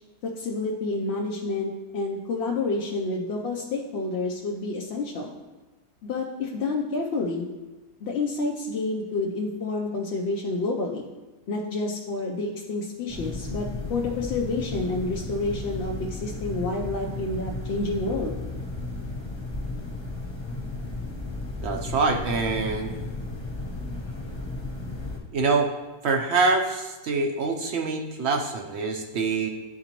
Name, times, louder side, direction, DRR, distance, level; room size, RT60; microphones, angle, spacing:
voice 1, 0.2-5.3 6.0-7.5 8.0-11.1 11.5-18.4, left 3 dB, 60° left, -1 dB, 0.7 m, -29 dB
sound 1, 13.1-25.2, left 2 dB, 20° left, 0.9 m, -34 dB
voice 2, 21.6-23.0 25.3-25.7 26.0-29.5, right 3 dB, 65° right, 3 dB, 0.7 m, -25 dB
11.0 x 3.9 x 2.9 m, 1.1 s
omnidirectional pair, 1.6 m